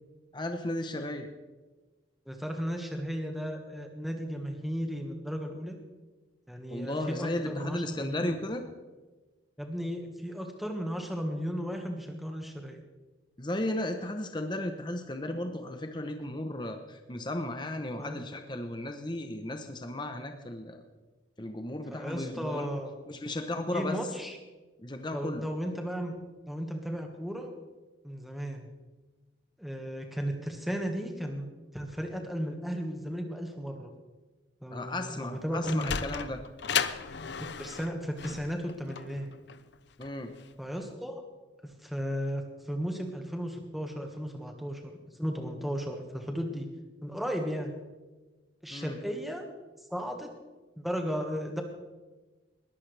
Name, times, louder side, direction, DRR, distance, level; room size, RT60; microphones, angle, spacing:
voice 1, 0.3-1.3 6.7-8.6 13.4-20.8 21.4-22.7 23.1-23.9 24.8-25.5 34.7-36.4 40.0-40.3 48.7-49.0, left 1 dB, 25° left, 5 dB, 0.9 m, -35 dB
voice 2, 2.3-5.8 6.5-8.3 9.6-12.8 18.0-18.2 21.9-22.9 23.7-24.4 25.1-26.2 26.5-27.5 28.0-28.7 29.6-31.5 31.7-33.9 34.6-35.9 37.4-39.3 40.6-41.2 41.6-46.7 47.0-47.7 48.6-49.4 49.9-50.3 50.8-51.6, equal, ahead, 2 dB, 1.6 m, -35 dB
Sliding door, 35.3-40.5, left 7 dB, 65° left, 0.6 m, -35 dB
20.5 x 14.5 x 3.4 m, 1.2 s
head